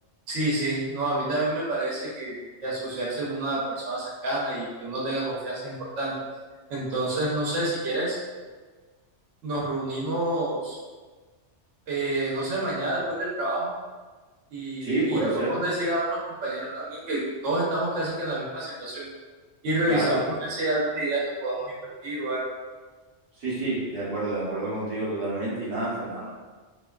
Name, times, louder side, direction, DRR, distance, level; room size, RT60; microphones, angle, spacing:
voice 1, 0.3-6.1 6.7-8.2 9.4-10.8 11.9-13.7 14.5-19.1 19.6-22.4, right 1 dB, 80° right, -5 dB, 0.9 m, -28 dB
voice 2, 14.8-15.6 19.9-20.3 23.4-26.3, right 2 dB, 60° right, -8 dB, 1.1 m, -28 dB
2.5 x 2.2 x 2.2 m, 1.4 s
omnidirectional pair, 1.2 m